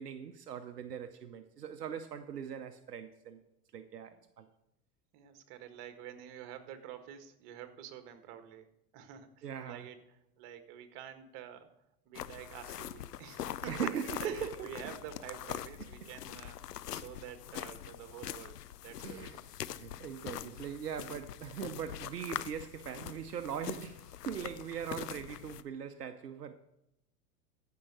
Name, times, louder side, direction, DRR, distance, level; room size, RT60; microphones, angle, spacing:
voice 1, 0.0-3.4 3.7-4.5 9.4-9.9 13.7-14.7 15.8-16.1 19.0-19.4 19.7-26.6, right 8 dB, 90° right, 0.8 m, -40 dB
voice 2, 5.1-8.7 8.9-10.0 10.4-11.7 12.0-18.6 18.8-19.4, right 9 dB, 50° right, 1.6 m, -48 dB
sound 1, 12.1-25.6, left 11 dB, 85° left, 0.7 m, -43 dB
14.5 x 5.8 x 6.2 m
hypercardioid pair, 90°, 46 cm